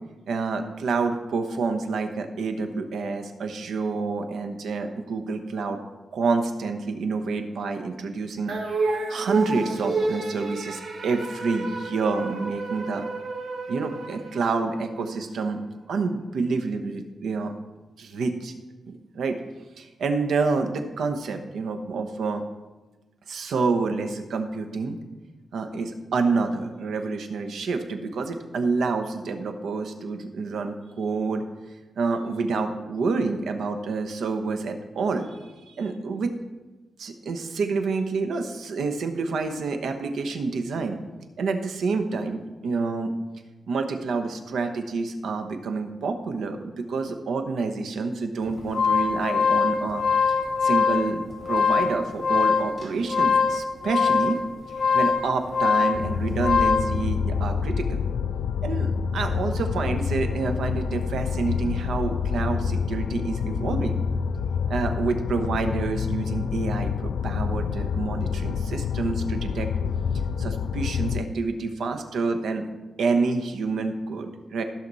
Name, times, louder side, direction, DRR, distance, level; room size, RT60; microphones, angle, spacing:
voice 1, 0.3-5.8 6.1-8.5 9.1-13.0 13.7-15.6 15.9-17.5 18.0-18.5 18.9-19.4 19.8-22.4 23.3-25.0 25.5-31.4 32.0-36.3 37.0-41.0 41.4-43.1 43.7-50.0 50.6-54.4 54.9-58.0 58.6-64.0 64.7-69.7 70.4-72.7 73.0-74.6, right 4 dB, 75° right, 6 dB, 1.0 m, -28 dB
sound 1, 8.5-15.0, right 3 dB, 55° right, 1.5 m, -30 dB
sound 2, 48.5-56.9, left 5 dB, 30° left, 2.4 m, -23 dB
sound 3, 55.9-71.2, left 6 dB, 80° left, 0.3 m, -27 dB
15.0 x 6.0 x 4.1 m, 1.2 s
wide cardioid pair, 175°, 0 cm